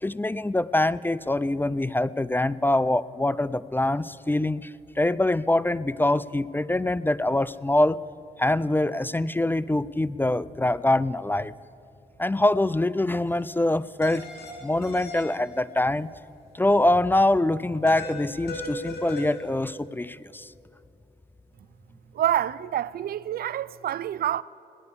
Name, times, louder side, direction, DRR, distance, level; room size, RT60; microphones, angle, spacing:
voice 1, 0.0-8.0 8.4-11.5 12.2-14.3 14.6-16.1 16.5-20.5, left 1 dB, 10° left, 0.4 m, -24 dB
sound 1, 13.3-13.4 14.0-15.8 17.9-19.5, left 1 dB, 75° left, 3.2 m, -38 dB
voice 2, 22.1-24.4, right 11 dB, 65° right, 0.4 m, -27 dB
17.5 x 10.5 x 6.9 m
supercardioid pair, 60°, 17 cm